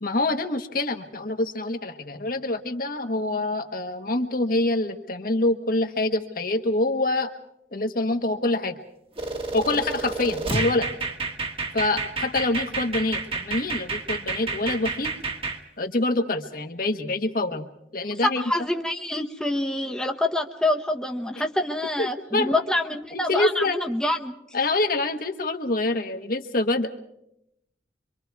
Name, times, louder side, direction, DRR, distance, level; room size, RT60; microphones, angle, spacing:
voice 1, 0.0-7.3 7.7-8.7 9.5-10.9 11.7-15.1 15.8-18.5 22.0-22.5 23.1-23.8 24.5-26.9, left 2 dB, 55° left, 6 dB, 1.3 m, -26 dB
sound 1, 9.2-15.6, right 3 dB, 30° right, 1.5 m, -30 dB
voice 2, 18.4-24.3, left 1 dB, 5° left, 2 dB, 1.0 m, -26 dB
26.0 x 24.5 x 4.7 m, 0.83 s
head